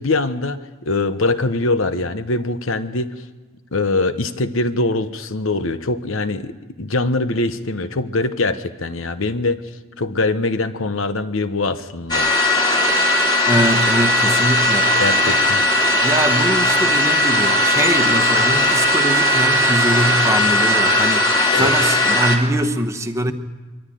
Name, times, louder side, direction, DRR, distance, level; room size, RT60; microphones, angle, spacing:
voice 1, 0.0-3.1 3.7-9.6 10.0-12.3 15.0-15.6 21.5-21.7, left 2 dB, 75° left, 11 dB, 1.1 m, -22 dB
sound 1, 12.1-22.4, left 1 dB, 20° left, 2.7 m, -17 dB
voice 2, 13.5-15.4 16.0-23.3, right 1 dB, 15° right, 7 dB, 1.1 m, -22 dB
23.5 x 14.0 x 9.2 m, 1.3 s
head